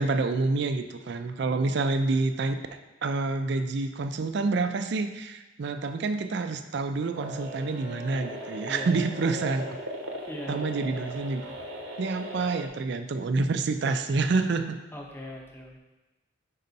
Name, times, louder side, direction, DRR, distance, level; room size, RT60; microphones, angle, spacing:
voice 1, 0.0-9.8 10.5-11.4 12.0-14.8, right 3 dB, 55° right, 9 dB, 0.4 m, -28 dB
sound 1, 7.1-12.7, right 1 dB, 80° right, 0.9 m, -38 dB
voice 2, 8.7-9.0 10.3-10.8 14.9-15.8, left 1 dB, 10° left, -1 dB, 0.7 m, -40 dB
5.4 x 5.3 x 4.0 m, 1.1 s
head